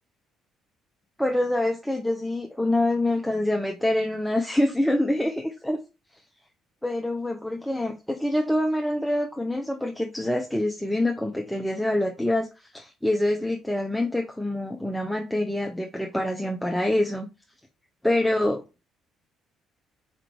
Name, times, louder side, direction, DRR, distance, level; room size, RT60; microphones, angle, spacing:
voice 1, 1.2-5.8 6.8-17.3 18.0-18.6, left 1 dB, 5° left, 0.7 m, -26 dB
4.4 x 3.7 x 3.1 m
figure-of-eight pair, 50°, 0 cm